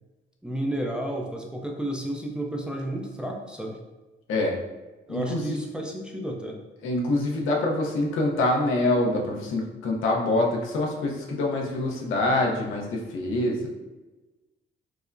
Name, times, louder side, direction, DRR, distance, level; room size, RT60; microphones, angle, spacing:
voice 1, 0.4-3.8 5.1-6.6, right 1 dB, 5° right, 0 dB, 0.5 m, -31 dB
voice 2, 5.1-5.6 6.8-13.7, left 2 dB, 80° left, -1 dB, 0.8 m, -25 dB
4.7 x 2.0 x 2.6 m, 1.1 s
cardioid pair, 90°, 20 cm